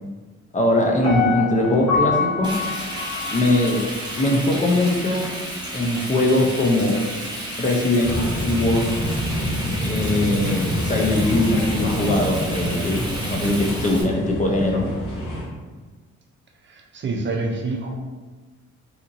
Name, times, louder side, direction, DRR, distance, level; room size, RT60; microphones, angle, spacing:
voice 1, 0.5-2.6 3.3-3.8 4.2-5.3 5.7-7.0 7.6-8.9 9.8-14.9, left 1 dB, 25° left, 0 dB, 0.5 m, -21 dB
Piano, 1.0-4.1 4.6-4.7, left 5 dB, 65° left, 1.1 m, -25 dB
Frying (food), 2.4-14.0, right 1 dB, 15° right, 1.0 m, -32 dB
sound 1, 8.0-15.4, equal, 85° left, 0.9 m, -27 dB
voice 2, 16.6-18.0, right 3 dB, 40° right, 2 dB, 0.5 m, -27 dB
2.8 x 2.5 x 2.5 m, 1.3 s
cardioid pair, 80°, 30 cm